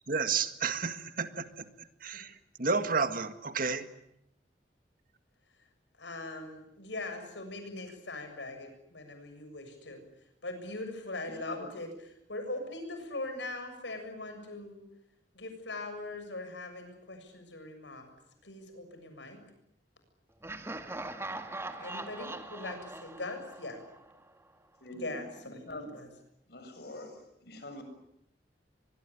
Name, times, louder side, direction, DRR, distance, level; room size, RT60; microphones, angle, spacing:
voice 1, 0.1-1.5 2.0-2.3 2.6-3.9, right 5 dB, 55° right, 10 dB, 1.8 m, -31 dB
voice 2, 6.0-10.0 10.4-11.9 12.3-14.8 15.3-18.1 18.4-19.4 21.8-23.8 25.0-26.1, left 2 dB, 85° left, 7 dB, 7.1 m, -41 dB
Laughter, 20.4-24.3, right 2 dB, 15° right, 2.0 m, -41 dB
voice 3, 24.8-25.1 25.7-26.0 26.5-27.1 27.4-27.8, left 2 dB, 65° left, 7 dB, 7.1 m, -43 dB
24.0 x 22.5 x 10.0 m, 0.79 s
head